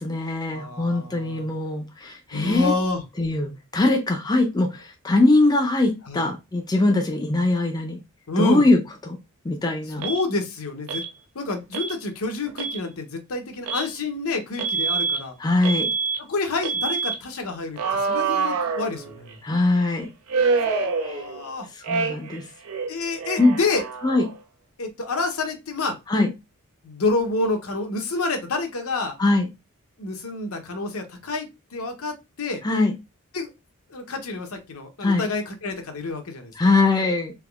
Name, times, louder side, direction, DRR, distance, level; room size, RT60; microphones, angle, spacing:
voice 1, 0.0-2.7 3.2-8.0 8.4-9.2 9.4-10.0 15.4-15.9 19.4-20.1 21.0-21.3 21.7-22.5 23.4-23.6 24.0-24.2 26.1-26.3 29.2-29.5 32.6-32.9 35.0-35.3 36.6-37.3, left 2 dB, 20° left, 4 dB, 0.4 m, -21 dB
voice 2, 0.5-1.5 2.3-3.0 6.1-6.3 8.3-8.7 10.0-11.0 11.3-15.3 16.2-19.4 20.8-21.7 22.9-23.8 24.8-26.0 26.8-29.2 30.0-32.6 33.3-33.5 33.9-36.5, left 3 dB, 75° left, 5 dB, 0.8 m, -28 dB
Alarm, 10.0-10.2 10.9-11.1 11.7-11.9 12.5-12.8 13.7-13.9 14.6-15.2 15.6-16.2 16.6-17.2 17.8-19.3 20.3-21.5 21.8-22.4 22.7-24.4, right 4 dB, 80° right, 0.6 m, -26 dB
3.4 x 2.9 x 2.3 m, 0.24 s
head